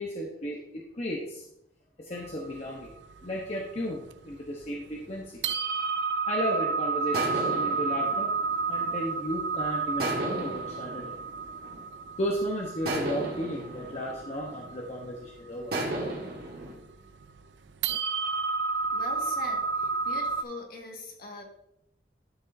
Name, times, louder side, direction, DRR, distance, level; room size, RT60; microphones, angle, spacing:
voice 1, 0.0-1.4 2.0-2.9 3.2-5.4 6.3-8.3 8.7-11.1 12.2-15.9, equal, 35° left, -1 dB, 1.0 m, -34 dB
sound 1, 2.1-4.5 5.0-5.1 5.4-20.4, right 4 dB, 80° right, 0.5 m, -31 dB
sound 2, 7.1-9.4 10.0-12.1 12.8-15.1 15.7-16.7, right 2 dB, 55° right, 1.8 m, -35 dB
voice 2, 18.9-21.4, left 2 dB, 55° left, 1 dB, 1.8 m, -41 dB
12.0 x 6.3 x 2.7 m, 0.80 s
head